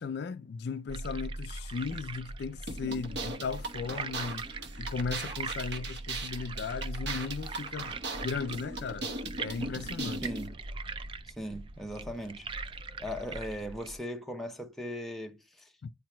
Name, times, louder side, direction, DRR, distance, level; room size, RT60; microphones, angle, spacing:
voice 1, 0.0-4.4 4.8-8.0 8.2-9.1 9.4-10.2 15.8-15.9, left 5 dB, 55° left, 0.3 m, -36 dB
sound 1, 0.9-14.0, right 3 dB, 25° right, 0.3 m, -41 dB
sound 2, 2.7-10.5, right 3 dB, 55° right, 1.1 m, -39 dB
voice 2, 10.2-10.6 11.3-12.5 13.0-15.7, equal, ahead, 0.7 m, -39 dB
9.6 x 4.5 x 2.2 m
head